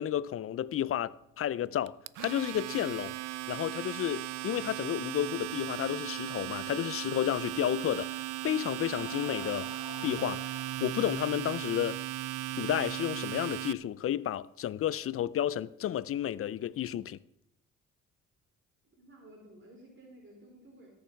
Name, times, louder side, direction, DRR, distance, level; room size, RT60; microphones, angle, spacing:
voice 1, 0.0-3.2 3.5-9.7 10.0-12.0 12.6-17.2, left 11 dB, 50° left, 0.4 m, -32 dB
Domestic sounds home sounds, 1.9-13.7, right 16 dB, 90° right, 0.5 m, -37 dB
sound 1, 7.8-7.9 8.6-8.7 8.9-11.4, left 7 dB, 75° left, 2.0 m, -48 dB
voice 2, 18.8-20.9, right 1 dB, 40° right, 4.0 m, -54 dB
18.5 x 7.1 x 4.6 m
cardioid pair, 90°, 30 cm